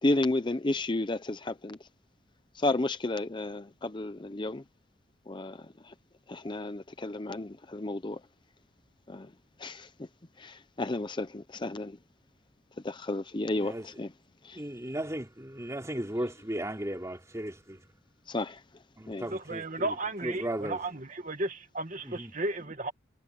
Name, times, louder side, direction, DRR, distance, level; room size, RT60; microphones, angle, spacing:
voice 1, 0.0-1.9 2.5-4.6 5.3-5.5 5.8-5.9 6.3-8.2 9.1-9.3 9.6-9.9 10.4-12.0 12.8-14.1 14.4-14.6 18.3-18.6 19.1-19.3, left 2 dB, 25° left, 0.6 m, -32 dB
voice 2, 13.5-13.9 14.5-17.8 19.0-20.0 20.2-20.9 22.0-22.3, right 1 dB, 15° right, 3.3 m, -36 dB
voice 3, 19.3-20.9 21.2-22.9, right 2 dB, 40° right, 1.9 m, -34 dB
head